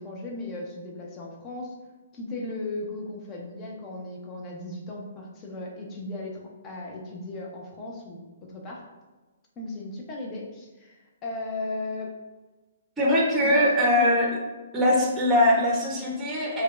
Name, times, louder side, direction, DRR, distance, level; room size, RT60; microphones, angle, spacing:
voice 1, 0.0-1.7 2.1-8.9 9.6-12.1 13.4-14.2, left 2 dB, 25° left, -1 dB, 0.8 m, -36 dB
voice 2, 13.0-14.3 14.7-16.6, left 1 dB, 15° right, -2 dB, 0.8 m, -21 dB
6.2 x 2.3 x 2.4 m, 1.2 s
figure-of-eight pair, 125°, 0 cm